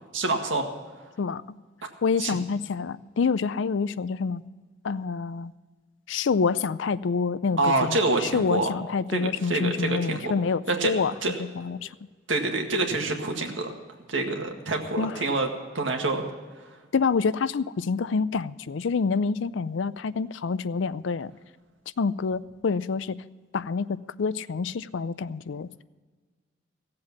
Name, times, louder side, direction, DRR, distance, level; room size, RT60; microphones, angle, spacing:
voice 1, 0.1-0.7 2.2-2.4 7.6-8.7 9.1-10.3 10.7-10.9 11.2-11.3 12.3-13.7 14.1-15.5 15.7-16.3, right 2 dB, 75° right, 3 dB, 1.9 m, -26 dB
voice 2, 2.0-4.4 4.8-5.5 6.1-11.1 11.6-11.9 15.0-15.2 16.9-21.3 22.0-23.2 23.5-25.8, left 5 dB, 70° left, 17 dB, 0.4 m, -27 dB
16.5 x 7.7 x 7.2 m, 1.4 s
head